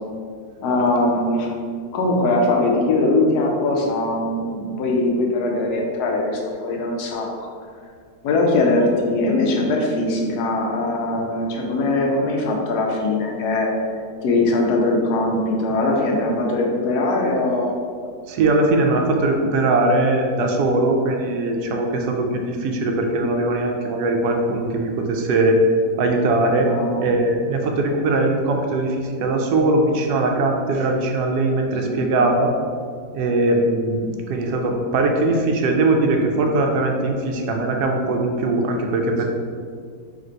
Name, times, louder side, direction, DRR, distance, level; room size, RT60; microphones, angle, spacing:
voice 1, 0.6-1.5 1.9-7.5 8.2-13.7 14.2-17.8 26.7-27.1 31.9-32.1, left 2 dB, 80° left, 0 dB, 1.2 m, -21 dB
voice 2, 18.3-25.6 26.0-26.7 27.0-32.5 33.1-39.2, right 2 dB, 80° right, 2 dB, 1.1 m, -20 dB
3.3 x 2.6 x 4.3 m, 2.1 s
omnidirectional pair, 1.7 m